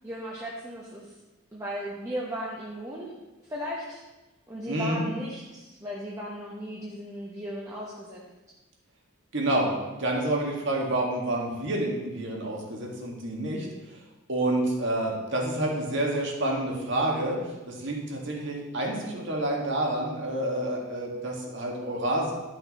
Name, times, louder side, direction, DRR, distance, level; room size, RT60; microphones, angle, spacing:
voice 1, 0.0-1.1 1.5-3.1 3.4-4.0 4.5-8.2, equal, 15° right, -5 dB, 1.0 m, -36 dB
voice 2, 4.7-5.1 9.3-14.0 14.3-22.3, right 1 dB, 55° right, -1 dB, 1.9 m, -28 dB
12.0 x 5.8 x 4.2 m, 1.1 s
head